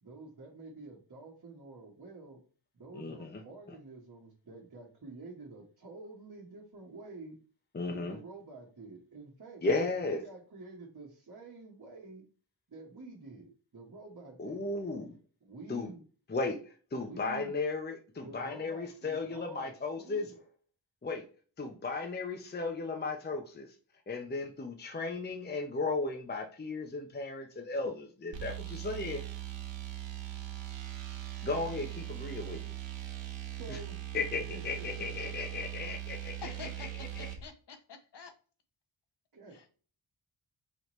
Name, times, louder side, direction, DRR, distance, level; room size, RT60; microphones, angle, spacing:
voice 1, 0.0-2.4 2.7-7.4 7.8-12.2 12.7-14.6 15.4-16.0 17.1-17.6 18.2-20.4 33.6-34.0 34.3-35.1 39.3-39.7, right 3 dB, 45° right, -3 dB, 1.2 m, -49 dB
voice 2, 2.9-3.4 7.7-8.2 9.6-10.2 14.4-15.2 15.7-15.9 16.3-16.6 16.9-20.3 21.0-21.2 21.6-23.7 24.1-29.2 31.4-32.6 33.7-33.8 34.1-36.4 36.8-37.3, left 3 dB, 25° left, 3 dB, 0.6 m, -35 dB
sound 1, 28.3-37.4, right 13 dB, 75° right, 1.0 m, -40 dB
voice 3, 36.4-38.3 39.5-39.7, left 5 dB, 65° left, 7 dB, 0.9 m, -48 dB
5.0 x 2.8 x 3.0 m, 0.39 s
cardioid pair, 70°, 45 cm